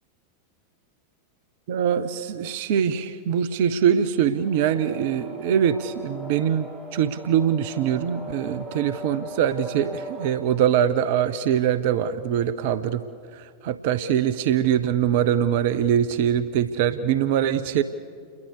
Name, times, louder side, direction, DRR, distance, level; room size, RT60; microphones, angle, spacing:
voice 1, 1.7-13.0 13.3-17.8, right 9 dB, 50° right, 13 dB, 0.9 m, -23 dB
sound 1, 4.1-10.3, right 1 dB, ahead, 7.9 m, -39 dB
29.5 x 22.0 x 6.8 m, 2.1 s
figure-of-eight pair, 90°, 0 cm